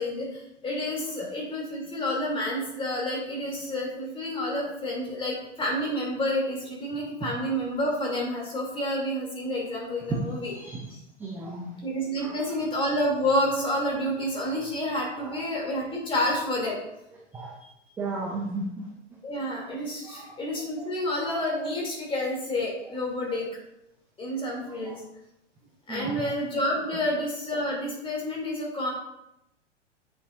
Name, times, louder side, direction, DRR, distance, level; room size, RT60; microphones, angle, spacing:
voice 1, 0.0-10.5 11.8-16.8 17.6-17.7 19.2-23.5 24.2-25.0 25.9-28.9, left 1 dB, 15° left, -2 dB, 2.5 m, -29 dB
voice 2, 11.2-11.7 12.2-12.6 15.1-15.4 17.3-17.5 18.0-18.9 20.0-20.3 20.8-20.9 24.7-25.0 25.9-26.1 26.9-27.0, right 3 dB, 5° right, -1 dB, 0.4 m, -35 dB
8.1 x 7.1 x 2.5 m, 0.85 s
figure-of-eight pair, 105°, 36 cm